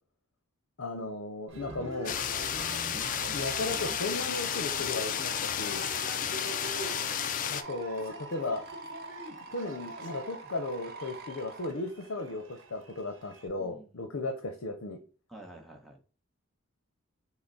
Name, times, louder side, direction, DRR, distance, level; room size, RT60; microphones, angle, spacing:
voice 1, 0.8-2.2 3.3-5.9 7.5-8.6 9.5-15.0, left 2 dB, 65° left, 5 dB, 0.7 m, -35 dB
Cheering, 1.5-13.5, right 2 dB, 65° right, 0.9 m, -46 dB
sound 1, 2.1-7.6, left 9 dB, 40° left, 0.3 m, -32 dB
sound 2, 3.2-11.7, right 3 dB, 50° right, 0.5 m, -45 dB
voice 2, 6.1-6.7 13.6-14.3 15.3-16.0, right 1 dB, ahead, 1 dB, 0.9 m, -52 dB
5.9 x 2.1 x 4.0 m, 0.36 s
head